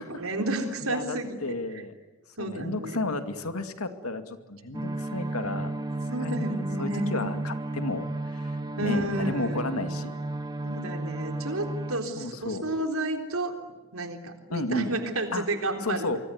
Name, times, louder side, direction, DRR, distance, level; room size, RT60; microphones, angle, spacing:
voice 1, 0.0-1.6 2.4-3.0 6.1-7.4 8.8-9.7 10.6-13.6 13.9-16.1, right 1 dB, 80° right, 5 dB, 3.7 m, -31 dB
voice 2, 0.8-1.9 2.4-5.7 6.1-10.1 12.1-12.6 14.5-14.9 15.3-15.5 15.8-16.2, left 2 dB, 90° left, 8 dB, 2.4 m, -33 dB
sound 1, 4.7-12.0, right 2 dB, 20° right, 1.7 m, -33 dB
26.0 x 23.5 x 9.6 m, 1.2 s
head